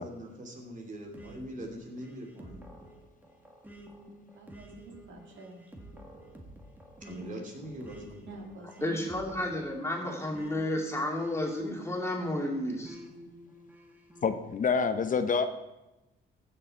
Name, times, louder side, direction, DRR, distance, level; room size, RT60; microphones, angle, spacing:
voice 1, 0.0-2.6 7.0-8.5, right 1 dB, 40° right, 1 dB, 3.1 m, -42 dB
sound 1, 1.1-12.2 12.8-14.4, equal, 10° right, 1.8 m, -51 dB
voice 2, 4.3-5.7 8.2-9.1, right 3 dB, 70° right, 1 dB, 2.3 m, -48 dB
voice 3, 8.8-13.0, left 1 dB, 15° left, -1 dB, 2.8 m, -32 dB
voice 4, 14.2-15.5, left 5 dB, 40° left, 10 dB, 0.7 m, -27 dB
15.0 x 6.9 x 4.3 m, 1.0 s
cardioid pair, 90°, 20 cm